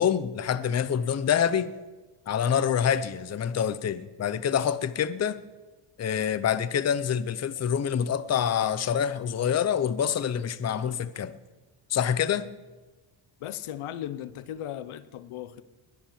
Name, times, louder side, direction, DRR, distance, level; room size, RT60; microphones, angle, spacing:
voice 1, 0.0-1.7 2.3-5.4 6.0-11.3 11.9-12.5, left 8 dB, 30° left, 0.7 m, -26 dB
voice 2, 13.4-15.6, left 11 dB, 80° left, 0.9 m, -37 dB
21.0 x 8.6 x 7.3 m
cardioid pair, 130°, 49 cm